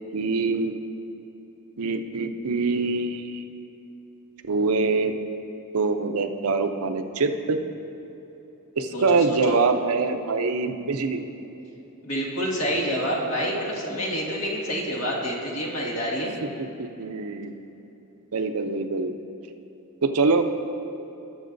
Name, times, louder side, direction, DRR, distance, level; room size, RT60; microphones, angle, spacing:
voice 1, 0.1-0.7 1.8-3.4 4.5-5.1 5.7-7.6 8.8-11.3 16.8-17.5 18.3-19.1 20.0-20.4, right 4 dB, 70° right, 7 dB, 0.6 m, -24 dB
voice 2, 8.9-9.6 12.0-16.3, equal, 65° left, -5 dB, 1.9 m, -28 dB
18.0 x 7.8 x 2.6 m, 3.0 s
head